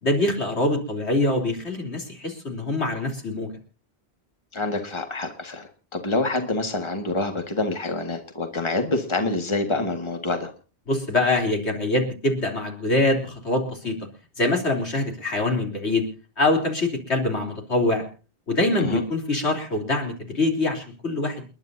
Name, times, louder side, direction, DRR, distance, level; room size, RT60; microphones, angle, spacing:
voice 1, 0.0-3.5 10.9-13.9 14.4-16.1 16.4-18.0 18.5-21.4, left 2 dB, 85° left, 2 dB, 3.7 m, -24 dB
voice 2, 4.5-10.5 18.8-19.0, left 2 dB, 25° left, 5 dB, 1.8 m, -27 dB
29.0 x 11.0 x 2.7 m, 0.35 s
omnidirectional pair, 1.1 m